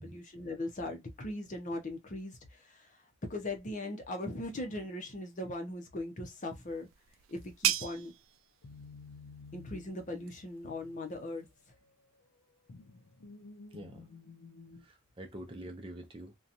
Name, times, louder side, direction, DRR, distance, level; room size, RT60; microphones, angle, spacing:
voice 1, 0.0-2.9 3.3-6.9 7.3-8.1 9.5-11.5, left 1 dB, 40° left, 0.7 m, -39 dB
sound 1, 4.6-5.2 8.6-11.7 12.2-14.9, left 4 dB, 80° left, 0.5 m, -53 dB
sound 2, 6.3-11.7, right 11 dB, 80° right, 0.3 m, -39 dB
voice 2, 13.7-14.1 14.7-16.4, right 1 dB, 25° right, 0.5 m, -46 dB
2.8 x 2.3 x 2.5 m
head